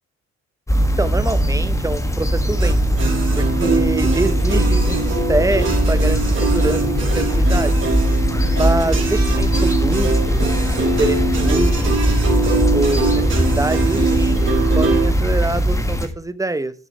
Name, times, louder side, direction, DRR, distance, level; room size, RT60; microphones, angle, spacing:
sound 1, 0.7-16.1, equal, 10° left, 1.5 m, -19 dB
voice 1, 1.0-2.8 3.4-7.9 8.5-10.4 11.0-11.2 11.4-12.2 12.7-14.4 14.7-16.7, right 2 dB, 10° right, 13 dB, 0.8 m, -25 dB
sound 2, 2.6-15.1, right 3 dB, 40° right, 3.6 m, -23 dB
9.1 x 6.1 x 5.4 m, 0.38 s
cardioid pair, 90°, 30 cm